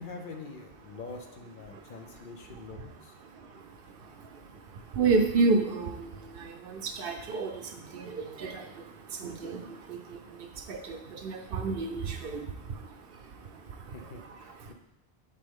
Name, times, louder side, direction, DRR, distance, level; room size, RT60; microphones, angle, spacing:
voice 1, 0.0-3.2 13.9-14.7, left 4 dB, 60° left, 4 dB, 0.7 m, -44 dB
voice 2, 3.2-14.7, right 4 dB, 65° right, 5 dB, 0.8 m, -32 dB
6.6 x 4.0 x 3.7 m, 0.94 s
omnidirectional pair, 1.1 m